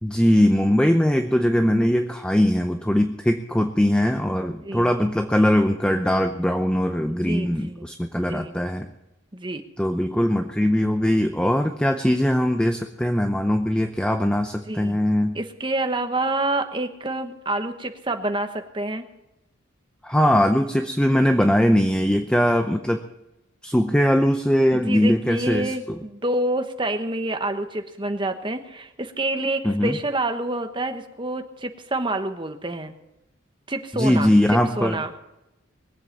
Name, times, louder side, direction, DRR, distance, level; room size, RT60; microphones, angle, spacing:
voice 1, 0.0-8.9 9.8-15.4 20.0-23.0 23.6-26.0 29.6-30.0 33.9-35.0, equal, 5° left, 6 dB, 0.6 m, -21 dB
voice 2, 4.6-4.9 7.2-7.9 8.2-8.5 9.3-9.6 14.7-15.0 15.3-19.0 24.7-32.9 33.7-34.3 34.8-35.1, right 2 dB, 25° right, 6 dB, 1.1 m, -27 dB
21.5 x 8.0 x 7.3 m, 0.92 s
head